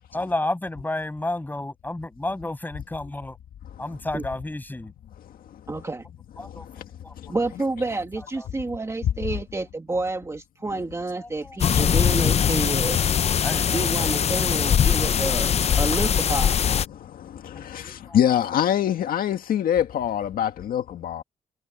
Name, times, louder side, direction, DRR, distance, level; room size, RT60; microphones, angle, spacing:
voice 1, 0.1-3.4 3.8-4.9 6.4-7.1 8.3-8.5 11.2-11.9 13.2-13.7 17.5-18.2, left 2 dB, 10° left, 7.4 m, -32 dB
voice 2, 3.6-4.0 5.2-5.9 6.4-6.9 7.2-7.4 9.3-9.4 10.7-10.8 13.2-13.5 16.9-21.2, left 10 dB, 75° left, 1.9 m, -26 dB
voice 3, 5.7-6.0 7.3-13.0 13.7-16.6, right 2 dB, 20° right, 2.1 m, -29 dB
sound 1, 11.6-16.8, left 8 dB, 45° left, 0.6 m, -21 dB
cardioid pair, 110°, 15 cm